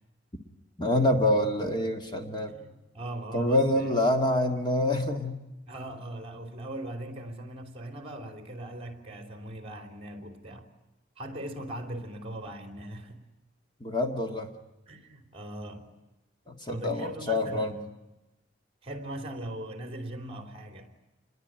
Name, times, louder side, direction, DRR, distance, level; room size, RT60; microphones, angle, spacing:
voice 1, 0.8-2.5 3.3-5.4 13.8-14.5 16.5-17.7, left 1 dB, 25° left, 1.8 m, -26 dB
voice 2, 2.5-3.9 5.7-10.7 11.2-13.2 14.9-15.9 16.7-17.8 18.8-20.9, right 1 dB, 30° right, 3.4 m, -39 dB
28.0 x 21.5 x 9.0 m
head